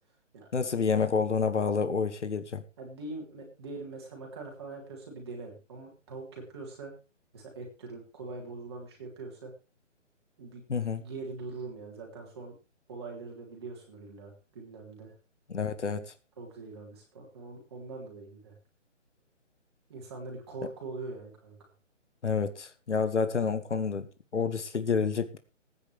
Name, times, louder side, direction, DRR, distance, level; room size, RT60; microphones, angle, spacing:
voice 1, 0.5-2.6 10.7-11.0 15.5-16.1 22.2-25.4, left 5 dB, 70° left, 10 dB, 2.0 m, -29 dB
voice 2, 2.8-6.9 7.3-9.5 10.4-10.6 11.0-12.5 12.9-15.1 16.4-18.5 19.9-21.5, right 3 dB, 20° right, -1 dB, 3.6 m, -42 dB
19.0 x 9.9 x 3.4 m, 0.30 s
hypercardioid pair, 180°, 37 cm